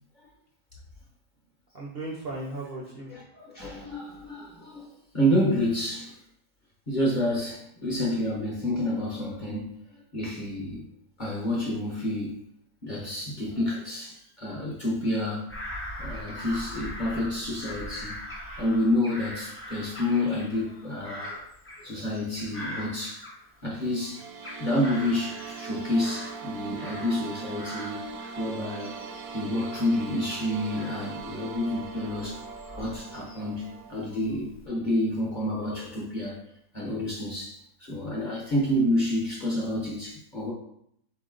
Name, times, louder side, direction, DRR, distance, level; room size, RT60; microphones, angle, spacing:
voice 1, 1.7-3.9, right 2 dB, 50° right, -3 dB, 0.7 m, -38 dB
voice 2, 3.1-6.2 6.9-9.8 10.1-10.9 11.2-12.4 12.8-15.5 16.0-18.2 18.6-21.4 21.8-23.2 23.6-24.2 24.6-28.0 28.4-29.0 29.3-32.4 32.8-36.4 36.7-40.5, left 1 dB, 40° left, -4 dB, 0.8 m, -29 dB
Bird vocalization bird call bird song / Crow, 15.5-23.8 24.2-27.3 27.6-33.6 34.1-34.7, left 1 dB, 15° left, 0.4 m, -42 dB
sound 1, 23.8-34.0, right 5 dB, 75° right, 1.0 m, -40 dB
4.1 x 3.0 x 3.8 m, 0.72 s
omnidirectional pair, 1.6 m